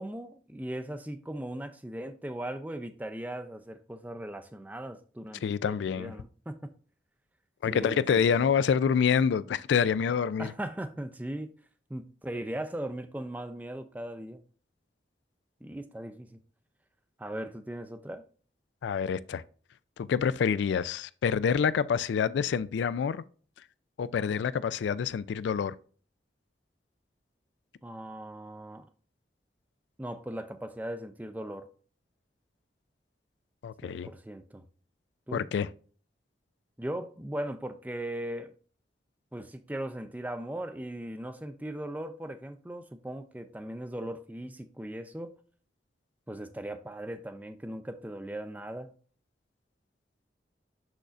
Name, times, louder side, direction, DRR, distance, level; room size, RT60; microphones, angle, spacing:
voice 1, 0.0-6.7 7.7-8.5 10.4-11.5 11.9-14.4 15.6-16.4 17.2-18.2 27.8-28.9 30.0-31.7 33.8-34.7 35.3-35.5 36.8-38.5 39.3-45.3 46.3-48.9, right 1 dB, 10° right, 0.4 m, -38 dB
voice 2, 5.4-6.1 7.6-10.5 18.8-19.4 20.0-23.2 24.0-25.7 33.6-34.1 35.3-35.7, left 7 dB, 80° left, 0.3 m, -27 dB
6.7 x 6.2 x 2.5 m
head